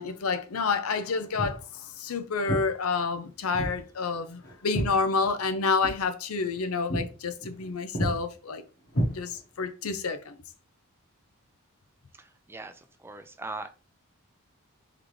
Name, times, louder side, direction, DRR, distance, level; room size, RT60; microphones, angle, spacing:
voice 1, 0.0-8.6 9.1-10.3, left 4 dB, 75° left, 0.6 m, -29 dB
Walk footsteps, 1.3-1.6 2.5-2.7 3.5-3.8 4.1-5.5 5.8-6.0 6.4-6.6 6.9-7.1 7.4-7.7 7.9-8.2 8.9-9.6, equal, 50° left, 1.4 m, -30 dB
voice 2, 12.1-13.7, right 2 dB, 10° right, 0.4 m, -40 dB
3.8 x 3.5 x 3.2 m
head